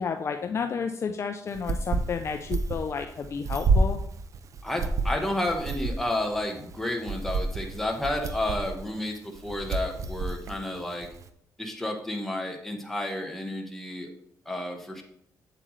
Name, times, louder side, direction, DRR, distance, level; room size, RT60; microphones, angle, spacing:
voice 1, 0.0-4.0, left 6 dB, 40° left, 6 dB, 0.5 m, -31 dB
sound 1, 1.5-11.3, right 3 dB, 50° right, 0.6 m, -29 dB
voice 2, 4.6-11.1 11.6-14.1 14.4-15.0, left 1 dB, 5° left, 1 dB, 1.2 m, -31 dB
7.8 x 7.6 x 3.2 m, 0.71 s
cardioid pair, 140°, 7 cm